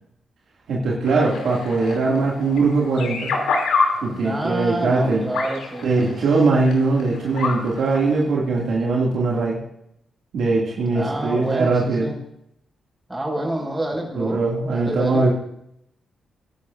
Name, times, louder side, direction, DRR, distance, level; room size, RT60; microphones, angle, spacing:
voice 1, 0.7-3.4 4.0-5.3 5.8-9.6 10.3-12.1 14.2-15.3, right 3 dB, 75° right, -3 dB, 2.3 m, -21 dB
sound 1, 1.1-8.2, left 4 dB, 80° left, 2.8 m, -28 dB
voice 2, 4.1-6.1 10.9-12.2 13.1-15.3, right 1 dB, 20° right, -1 dB, 5.7 m, -28 dB
24.0 x 10.5 x 2.6 m, 0.78 s
supercardioid pair, 50°, 0 cm